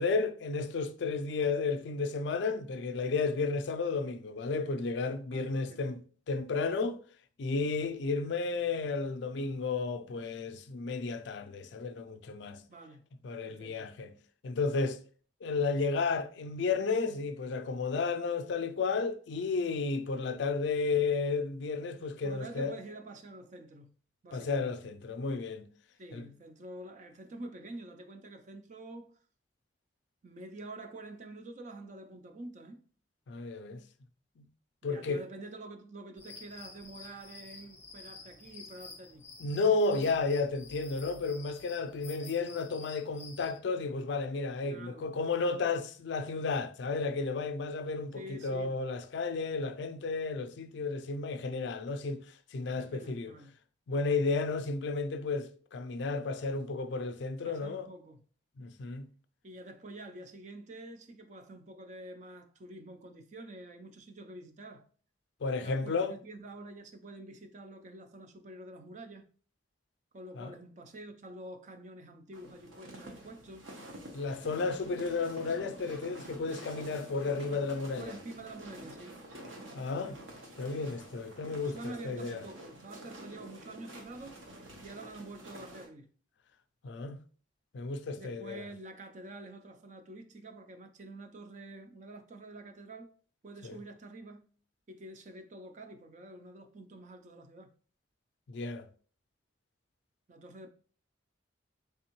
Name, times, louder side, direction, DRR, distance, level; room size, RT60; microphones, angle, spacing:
voice 1, 0.0-6.0 6.3-7.0 7.4-12.6 13.2-14.1 14.4-15.0 15.4-22.8 24.3-25.6 26.1-26.2 33.3-33.8 34.4-34.5 34.8-35.2 39.4-52.2 52.5-53.3 53.9-57.9 58.6-59.1 65.4-66.2 70.3-70.5 74.1-78.1 79.7-80.2 80.6-82.4 86.8-87.2 87.7-88.6 93.6-93.8 98.5-98.9, left 4 dB, 65° left, 0.4 m, -32 dB
voice 2, 5.3-6.0 12.7-13.0 13.4-13.9 22.2-23.9 24.2-24.7 26.0-29.2 30.2-32.8 34.8-39.3 44.7-45.1 48.1-48.7 52.8-53.5 57.5-58.2 59.4-64.9 65.6-69.2 70.1-73.7 78.0-79.2 81.6-84.4 84.8-86.1 88.2-93.1 93.4-94.4 94.9-97.7 100.3-100.7, right 2 dB, 40° right, 0.4 m, -47 dB
sound 1, 36.2-43.6, left 4 dB, 15° left, 0.6 m, -50 dB
sound 2, 72.3-85.9, right 1 dB, 90° right, 0.9 m, -48 dB
3.5 x 3.4 x 2.9 m
head